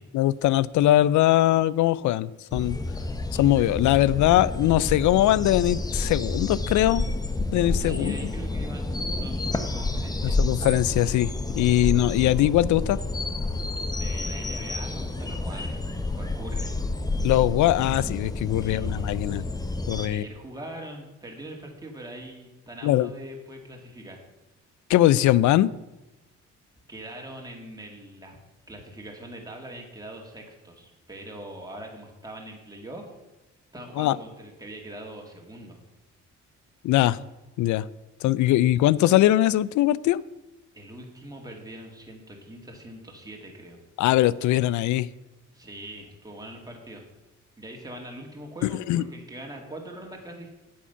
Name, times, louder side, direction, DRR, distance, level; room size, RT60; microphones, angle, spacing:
voice 1, 0.1-2.8 3.3-7.0 7.5-8.2 10.2-13.0 17.2-19.4 19.9-20.2 22.8-23.1 24.9-25.7 34.0-34.2 36.8-37.2 37.6-37.9 38.2-40.2 44.0-45.1 48.9-49.0, left 14 dB, 75° left, 20 dB, 0.5 m, -21 dB
sound 1, 2.5-20.1, left 2 dB, 15° left, 0.7 m, -29 dB
voice 2, 7.8-10.4 13.9-16.8 18.6-19.1 20.1-24.2 26.9-28.4 28.7-33.1 33.7-35.8 40.7-43.8 45.5-47.0 47.6-50.5, right 1 dB, 10° right, 0 dB, 2.2 m, -42 dB
8.7 x 7.4 x 5.7 m, 1.0 s
cardioid pair, 90°, 30 cm